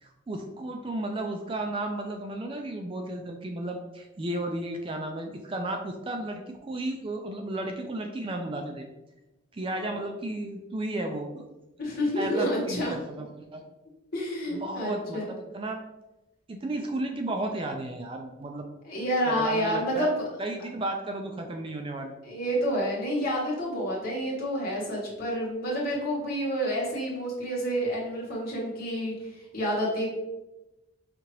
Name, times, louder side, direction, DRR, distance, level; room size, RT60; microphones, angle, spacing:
voice 1, 0.0-8.9 9.5-11.4 12.2-13.6 14.5-15.8 16.5-18.7 19.2-20.1 20.4-22.1, right 1 dB, 25° right, 3 dB, 0.3 m, -33 dB
voice 2, 11.8-12.9 14.1-15.3 18.8-20.2 22.2-30.1, equal, 45° left, -5 dB, 1.3 m, -29 dB
5.0 x 2.8 x 3.0 m, 1.0 s
head